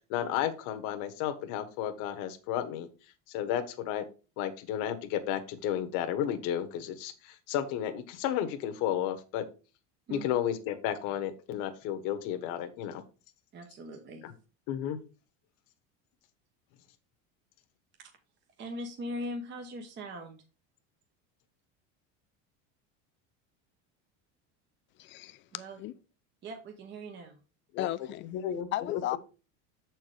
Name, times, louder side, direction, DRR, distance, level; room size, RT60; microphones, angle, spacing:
voice 1, 0.1-2.9 3.3-4.1 4.4-9.4 10.1-13.0 14.2-14.3 14.7-15.0 27.7-27.9 28.3-29.0, left 10 dB, 65° left, 1.2 m, -32 dB
voice 2, 13.5-14.3 18.0-18.1 18.6-20.4 25.5-25.8 26.4-27.4, equal, 30° right, 1.1 m, -40 dB
voice 3, 25.0-25.4 25.8-25.9 27.8-28.3 28.7-29.2, left 14 dB, 35° left, 0.5 m, -34 dB
7.3 x 4.6 x 4.9 m
cardioid pair, 150°, 34 cm